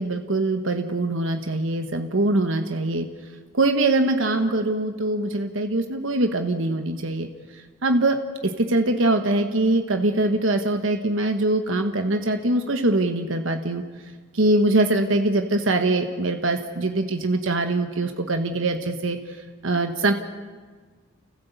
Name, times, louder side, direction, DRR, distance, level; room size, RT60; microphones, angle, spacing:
voice 1, 0.0-3.1 3.5-8.2 8.4-13.8 14.3-19.4 19.6-20.1, right 2 dB, 75° right, 6 dB, 1.3 m, -23 dB
29.5 x 15.0 x 8.2 m, 1.5 s
head